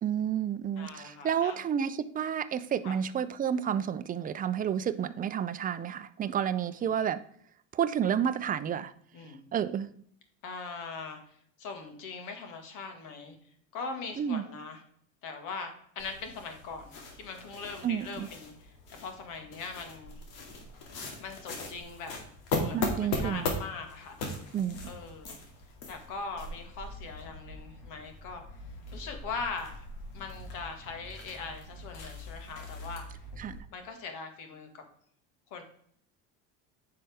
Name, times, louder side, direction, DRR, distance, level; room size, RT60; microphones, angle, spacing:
voice 1, 0.0-7.2 7.7-8.9 9.5-9.9 14.2-14.4 17.8-18.3 22.7-23.5 24.5-24.8 33.4-33.6, right 8 dB, 25° right, 13 dB, 0.5 m, -30 dB
voice 2, 0.8-1.7 2.8-3.0 6.8-6.9 9.1-9.4 10.4-11.2 11.6-13.4 13.7-14.8 15.2-18.7 19.0-20.2 21.2-22.1 22.5-24.2 24.9-25.4 25.9-28.4 28.9-29.8 30.1-33.1 33.7-34.8 35.5-35.6, left 4 dB, 65° left, 5 dB, 1.9 m, -41 dB
sound 1, 16.0-33.6, left 2 dB, 85° left, 2.3 m, -39 dB
9.2 x 5.7 x 3.5 m, 0.63 s
supercardioid pair, 125°, 34 cm